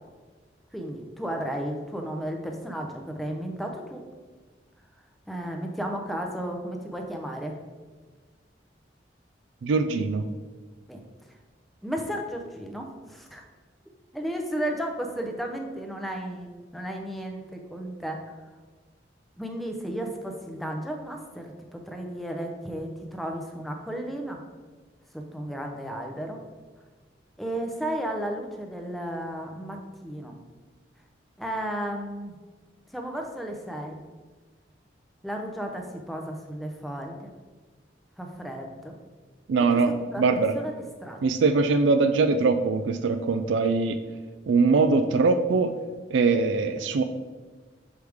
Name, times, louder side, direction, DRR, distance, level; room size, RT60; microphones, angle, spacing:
voice 1, 0.7-4.0 5.3-7.6 10.9-11.0 11.8-13.5 14.1-18.2 19.4-24.4 25.1-26.4 27.4-30.4 31.4-32.4 32.9-34.0 35.2-37.3 38.2-38.9 40.1-40.2 40.5-41.2, right 1 dB, ahead, 2 dB, 0.6 m, -34 dB
voice 2, 9.6-10.2 39.5-40.5 41.2-44.0 44.5-45.7 46.1-47.0, right 4 dB, 80° right, 7 dB, 0.4 m, -22 dB
6.3 x 4.8 x 3.5 m, 1.4 s
head